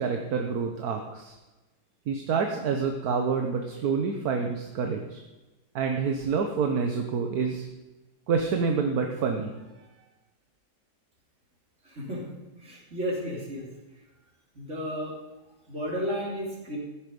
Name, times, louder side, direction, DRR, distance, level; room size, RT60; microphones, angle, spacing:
voice 1, 0.0-1.4 2.1-5.2 5.7-7.7 8.3-9.5, right 5 dB, 75° right, 4 dB, 1.5 m, -27 dB
voice 2, 11.8-12.2 12.6-13.7 14.6-15.1 15.7-16.8, equal, 45° right, -2 dB, 3.8 m, -33 dB
14.5 x 10.0 x 5.3 m, 1.1 s
omnidirectional pair, 1.6 m